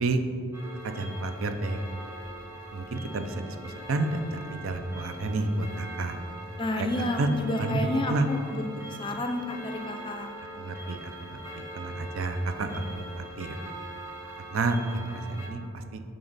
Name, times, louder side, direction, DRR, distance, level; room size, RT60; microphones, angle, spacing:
Clock, 0.5-15.5, right 1 dB, 15° right, 1.0 m, -42 dB
voice 1, 0.8-1.8 2.7-6.2 6.8-6.9 7.2-7.3 7.6-8.3 10.6-13.6 14.5-16.0, right 2 dB, 65° right, 8 dB, 0.5 m, -30 dB
voice 2, 6.6-8.6 9.0-10.3, left 1 dB, 20° left, 4 dB, 0.4 m, -30 dB
7.7 x 3.9 x 4.0 m, 2.6 s
head